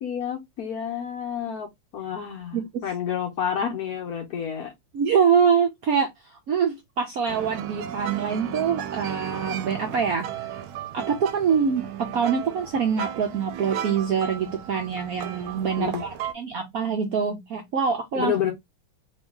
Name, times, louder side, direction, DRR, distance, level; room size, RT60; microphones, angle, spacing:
voice 1, 0.0-4.7 15.8-16.0 18.1-18.5, left 8 dB, 60° left, 1.0 m, -29 dB
voice 2, 4.9-6.1 6.5-10.3 10.9-16.1 16.3-18.3, right 6 dB, 65° right, 0.9 m, -24 dB
sound 1, 7.3-16.3, right 10 dB, 85° right, 1.4 m, -35 dB
3.1 x 2.7 x 3.4 m
omnidirectional pair, 2.2 m